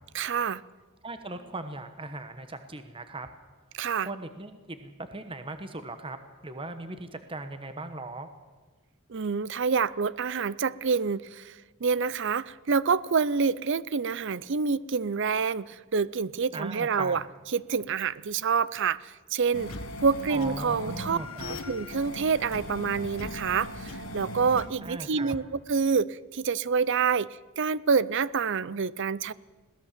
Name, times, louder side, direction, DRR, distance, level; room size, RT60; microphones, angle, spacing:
voice 1, 0.1-0.6 3.7-4.1 9.1-11.6 11.8-17.2 17.5-19.7 20.0-21.2 21.5-27.3 27.6-29.3, right 5 dB, 55° right, 20 dB, 0.5 m, -27 dB
voice 2, 1.0-3.3 4.0-6.2 6.4-8.3 16.5-17.2 20.3-21.6 24.8-25.4, right 2 dB, 25° right, 9 dB, 1.1 m, -38 dB
sound 1, 19.5-24.7, left 1 dB, 65° left, 1.8 m, -38 dB
21.5 x 17.0 x 7.4 m, 1.3 s
head